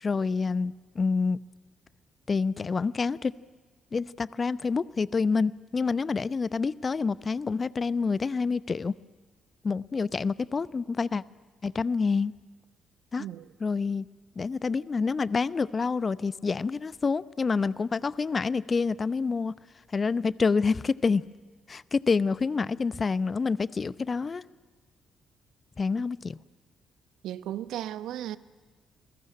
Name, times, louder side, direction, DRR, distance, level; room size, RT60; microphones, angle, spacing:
voice 1, 0.0-1.4 2.3-3.3 3.9-8.9 9.6-11.2 11.6-12.3 13.1-13.2 13.6-14.1 14.4-19.5 19.9-21.2 21.7-24.4 25.8-26.4, left 4 dB, 35° left, 0.8 m, -27 dB
voice 2, 27.2-28.4, right 12 dB, 65° right, 0.9 m, -35 dB
28.0 x 21.5 x 9.9 m
figure-of-eight pair, 40°, 0 cm